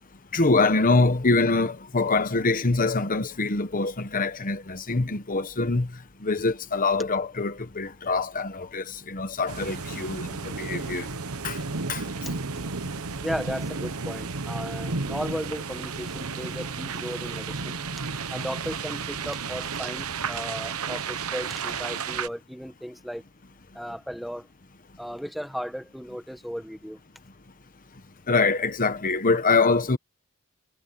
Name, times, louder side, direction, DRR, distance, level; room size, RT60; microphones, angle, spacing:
voice 1, 0.3-5.9 6.2-11.1 11.4-11.6 11.9-12.0 28.3-30.0, left 3 dB, 40° left, 1.1 m, -24 dB
sound 1, 9.5-22.3, right 4 dB, 70° right, 1.1 m, -33 dB
voice 2, 13.2-17.8 18.1-23.2 23.7-24.5 25.0-27.0, equal, ahead, 1.4 m, -35 dB
head